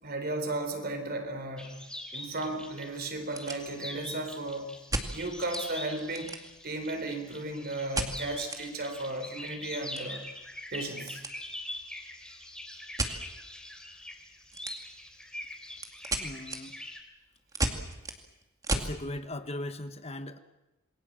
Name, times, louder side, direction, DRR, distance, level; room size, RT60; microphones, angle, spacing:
voice 1, 0.0-1.8 2.1-4.7 5.1-6.3 6.6-10.2 10.7-11.2, right 2 dB, 50° right, 7 dB, 4.1 m, -35 dB
sound 1, 1.4-1.5 2.1-2.2 2.4-2.5 3.1-4.1 4.9-5.7 6.0-6.8 7.9-8.6 9.0-9.1 9.4-11.4 11.6-11.9 13.0-13.2 14.5-15.1 15.4-19.0, right 2 dB, 15° right, 2.3 m, -34 dB
sound 2, 1.6-17.0, left 1 dB, 5° left, 3.5 m, -43 dB
voice 2, 16.2-16.8 18.7-20.4, left 1 dB, 30° left, 9 dB, 1.2 m, -38 dB
27.5 x 22.0 x 7.6 m, 0.96 s
head